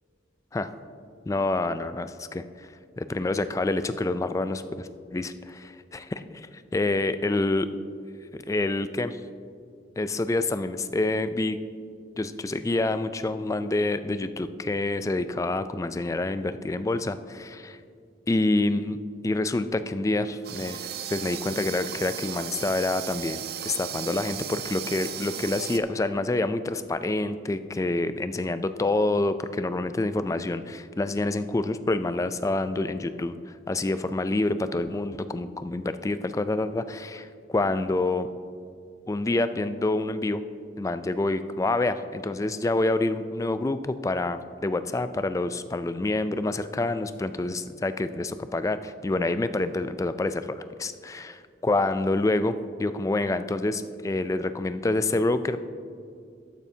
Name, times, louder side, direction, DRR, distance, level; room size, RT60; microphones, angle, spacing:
voice 1, 1.3-2.7 3.0-5.7 5.9-6.0 6.3-7.7 8.3-9.2 10.0-11.6 12.2-17.8 18.3-19.0 19.2-20.8 21.1-33.4 33.7-38.3 39.1-40.4 40.8-55.6, left 2 dB, 20° left, 12 dB, 0.3 m, -27 dB
sound 1, 20.4-25.8, right 9 dB, 60° right, 0.5 m, -36 dB
12.5 x 9.3 x 2.8 m, 2.3 s
head